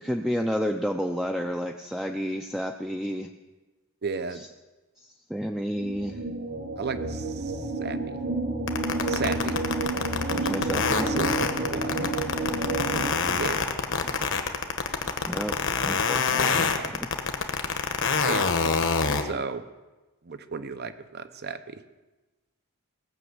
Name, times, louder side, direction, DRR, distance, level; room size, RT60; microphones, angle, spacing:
voice 1, 0.0-3.3 4.3-4.5 5.0-6.3 10.3-11.1 15.3-15.6 15.8-17.1, equal, ahead, 3 dB, 0.5 m, -31 dB
voice 2, 4.0-4.4 6.8-8.2 9.1-9.6 11.0-12.0 13.2-14.2 16.3-16.9 18.2-18.5 19.2-19.6 20.2-21.8, right 4 dB, 45° right, 11 dB, 0.7 m, -35 dB
sound 1, 5.8-13.1, right 2 dB, 65° right, 2.6 m, -30 dB
sound 2, 8.7-19.2, left 5 dB, 60° left, 1.2 m, -25 dB
18.5 x 6.2 x 7.9 m, 1.2 s
head